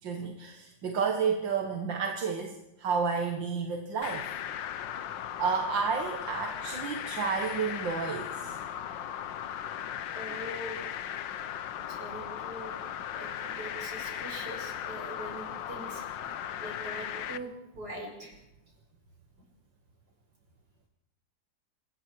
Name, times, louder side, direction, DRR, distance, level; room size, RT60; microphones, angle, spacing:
voice 1, 0.0-4.3 5.4-8.6, right 5 dB, 80° right, 3 dB, 2.4 m, -31 dB
sound 1, 4.0-17.4, left 10 dB, 80° left, 1.6 m, -37 dB
voice 2, 10.2-10.8 11.9-12.8 13.1-16.3 16.6-18.4, right 1 dB, 60° right, 0 dB, 7.1 m, -42 dB
27.0 x 21.0 x 4.7 m, 0.88 s
omnidirectional pair, 2.0 m